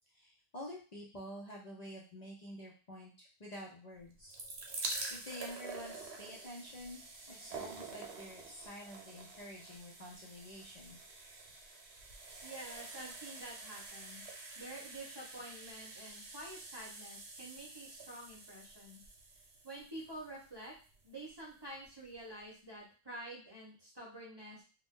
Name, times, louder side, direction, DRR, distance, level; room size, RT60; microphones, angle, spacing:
voice 1, 0.1-4.4 5.1-7.0 7.3-11.0, left 1 dB, 45° left, -3 dB, 0.7 m, -49 dB
sound 1, 4.0-21.1 21.8-21.9 22.1-22.2, right 3 dB, 70° right, 1.0 m, -47 dB
voice 2, 12.4-14.2 14.6-19.0 19.6-20.7 21.0-24.6, right 1 dB, 25° right, -4 dB, 0.7 m, -48 dB
2.6 x 2.3 x 3.6 m, 0.36 s
omnidirectional pair, 1.1 m